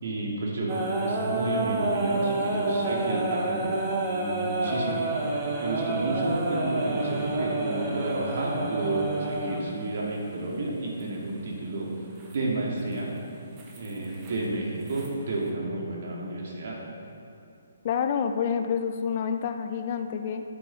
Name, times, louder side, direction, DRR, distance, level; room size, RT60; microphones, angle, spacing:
voice 1, 0.0-5.1 5.6-11.9 12.3-13.1 13.8-16.8, right 2 dB, 55° right, -2 dB, 2.6 m, -31 dB
sound 1, 0.7-9.6 11.0-11.1 12.2-12.4 13.6-14.4 14.9-15.1, right 2 dB, 20° right, 1.2 m, -29 dB
voice 2, 17.8-20.4, left 7 dB, 35° left, 7 dB, 0.5 m, -28 dB
8.9 x 7.5 x 5.9 m, 2.8 s
hypercardioid pair, 165°, 0 cm